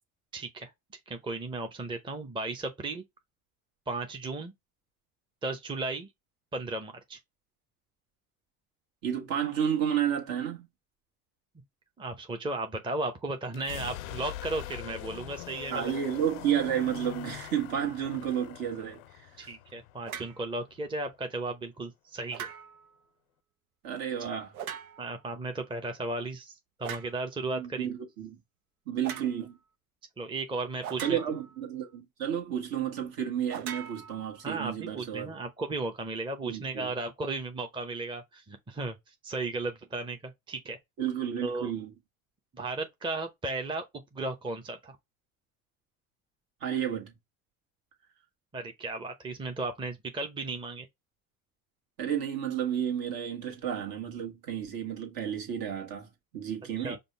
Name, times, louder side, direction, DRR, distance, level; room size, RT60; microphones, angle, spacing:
voice 1, 0.3-0.7 1.1-3.0 3.9-4.5 5.4-6.1 6.5-7.2 12.0-15.9 19.4-22.5 24.2-24.4 25.0-26.5 26.8-27.9 30.2-31.2 34.4-39.0 39.2-40.8 41.4-41.7 42.5-43.8 44.1-45.0 48.5-50.9 56.8-57.0, right 2 dB, 10° right, 0.7 m, -35 dB
voice 2, 9.0-10.7 15.7-19.0 19.4-19.5 23.8-24.5 27.5-28.4 28.9-29.5 31.0-35.3 36.4-36.9 41.0-41.9 46.6-47.1 52.0-57.0, right 9 dB, 55° right, 1.5 m, -31 dB
sound 1, 13.5-21.2, left 15 dB, 75° left, 0.5 m, -43 dB
sound 2, 20.1-20.4 22.3-22.9 24.5-25.2 26.8-27.2 29.0-29.3 30.8-31.6 33.5-34.6, right 8 dB, 90° right, 0.6 m, -40 dB
5.2 x 2.2 x 3.2 m
hypercardioid pair, 70°, 42 cm